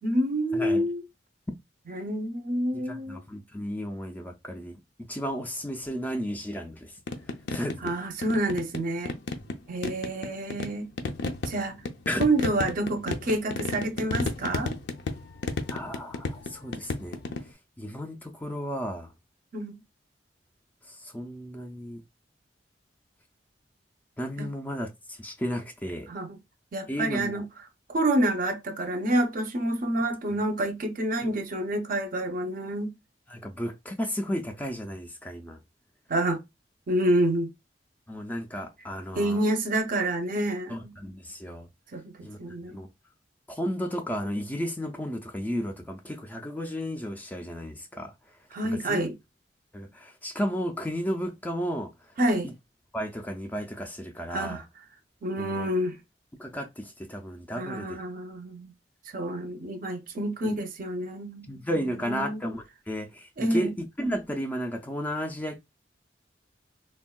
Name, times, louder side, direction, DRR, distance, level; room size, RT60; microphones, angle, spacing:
voice 1, 0.0-1.0 1.9-3.2 7.8-9.2 9.7-10.9 11.4-11.8 12.2-14.7 19.5-19.8 24.4-24.5 26.1-26.4 26.7-27.4 27.9-32.9 36.1-36.4 36.9-37.5 39.2-40.9 41.9-42.8 48.5-49.1 52.2-52.5 54.3-54.6 55.2-56.0 57.6-58.7 59.1-62.4 63.4-63.7, right 1 dB, 50° right, 0.5 m, -28 dB
voice 2, 0.5-0.8 2.7-4.8 5.1-6.9 7.5-7.9 12.1-12.2 15.7-17.2 17.8-19.1 20.9-22.0 24.2-26.1 26.9-27.5 31.2-31.3 33.3-35.6 38.1-39.4 40.7-41.7 42.2-42.4 42.7-42.9 43.5-48.1 48.6-49.0 49.7-51.9 52.4-52.5 52.9-54.6 55.4-55.7 56.4-58.0 60.4-60.5 61.5-65.6, equal, 10° left, 0.4 m, -33 dB
sound 1, 7.1-7.9 8.2-9.6 9.8-17.5, left 3 dB, 70° left, 0.5 m, -32 dB
3.4 x 2.2 x 2.2 m
head